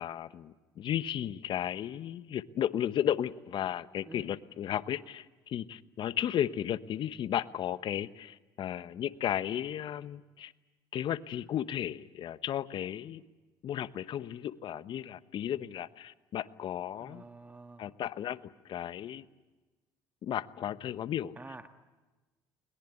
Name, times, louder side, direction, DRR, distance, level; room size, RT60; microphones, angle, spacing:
voice 1, 0.0-10.5 10.9-13.2 13.6-17.2 17.8-19.2 20.2-21.4, left 10 dB, 60° left, 15 dB, 1.0 m, -34 dB
voice 2, 17.0-17.9 21.4-21.7, right 3 dB, 15° right, 8 dB, 1.5 m, -48 dB
22.0 x 21.5 x 9.7 m, 1.2 s
supercardioid pair, 80°, 10 cm